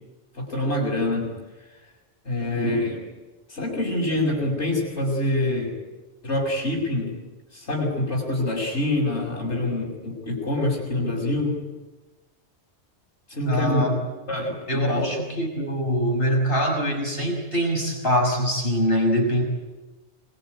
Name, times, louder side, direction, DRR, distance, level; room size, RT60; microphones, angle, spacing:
voice 1, 0.3-1.3 2.2-3.1 3.5-5.8 6.2-7.1 7.5-11.6 13.3-13.9 14.3-15.1, left 1 dB, 90° left, -5 dB, 6.0 m, -25 dB
voice 2, 13.5-13.9 14.7-19.4, equal, 55° left, 1 dB, 6.1 m, -23 dB
25.0 x 22.5 x 9.2 m, 1.2 s
omnidirectional pair, 1.1 m